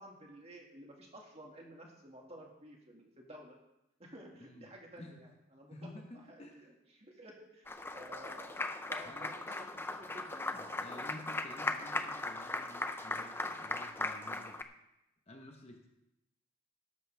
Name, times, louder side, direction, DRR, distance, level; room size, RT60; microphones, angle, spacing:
voice 1, 0.0-3.6 4.0-5.7 6.3-8.6 8.9-11.0, right 1 dB, 25° right, 0 dB, 2.1 m, -53 dB
voice 2, 4.4-4.7 5.0-5.2 5.7-6.7 9.0-9.4 10.5-14.6 15.3-15.9, left 1 dB, 25° left, 2 dB, 1.1 m, -52 dB
Applause, 7.7-14.6, left 2 dB, 10° left, 0.5 m, -38 dB
13.5 x 12.0 x 3.5 m, 0.89 s
head